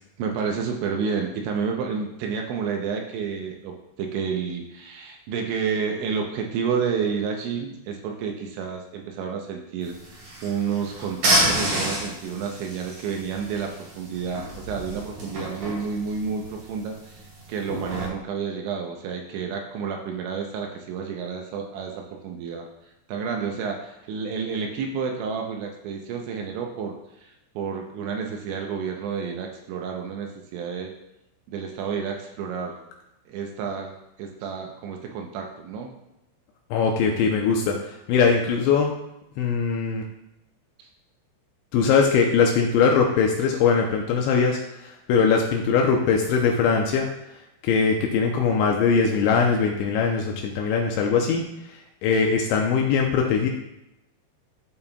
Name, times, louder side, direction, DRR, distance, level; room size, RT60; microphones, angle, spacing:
voice 1, 0.2-22.6 23.1-30.9 31.5-32.8 33.3-35.9, right 6 dB, 80° right, 2 dB, 2.8 m, -30 dB
sound 1, 9.8-18.1, right 1 dB, 50° right, 4.5 m, -29 dB
voice 2, 36.7-38.9 39.4-40.0 41.7-47.1 47.6-53.5, left 5 dB, 85° left, 1 dB, 2.7 m, -21 dB
12.5 x 5.6 x 2.2 m, 0.88 s
omnidirectional pair, 5.7 m